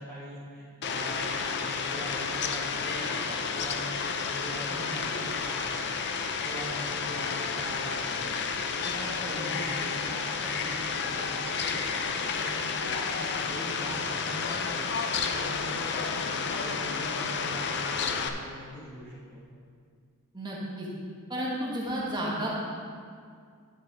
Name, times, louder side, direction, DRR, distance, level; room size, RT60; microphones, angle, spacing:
voice 1, 0.0-5.9 6.4-8.5 8.8-11.9 12.3-14.9 15.3-19.4, equal, 10° left, -13 dB, 1.8 m, -42 dB
Fowl, 0.8-18.3, left 5 dB, 50° left, 0.6 m, -31 dB
voice 2, 20.3-20.9 21.3-22.6, right 1 dB, 20° right, -5 dB, 1.5 m, -32 dB
11.0 x 5.2 x 5.0 m, 2.1 s
head